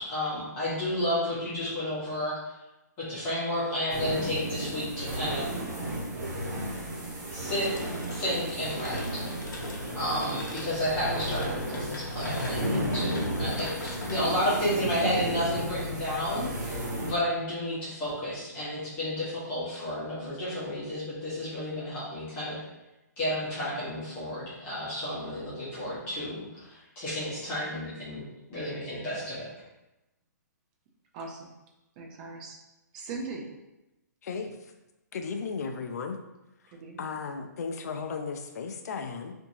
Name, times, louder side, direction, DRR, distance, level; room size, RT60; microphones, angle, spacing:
voice 1, 0.0-2.6 3.0-5.5 7.3-7.7 8.1-9.2 9.9-22.6 23.2-28.2 28.5-29.5, left 1 dB, 20° left, -10 dB, 1.0 m, -31 dB
sound 1, 3.9-17.1, right 1 dB, 65° right, 1.1 m, -33 dB
sound 2, 7.5-16.2, left 2 dB, 85° left, 0.7 m, -43 dB
voice 2, 31.1-31.5 32.0-32.6 32.9-33.5 36.7-37.2, right 3 dB, 30° right, -1 dB, 0.5 m, -39 dB
voice 3, 34.2-34.7 35.1-36.2 36.6-39.3, left 5 dB, 60° left, 5 dB, 0.4 m, -35 dB
2.7 x 2.6 x 2.6 m, 0.97 s
hypercardioid pair, 155°, 10 cm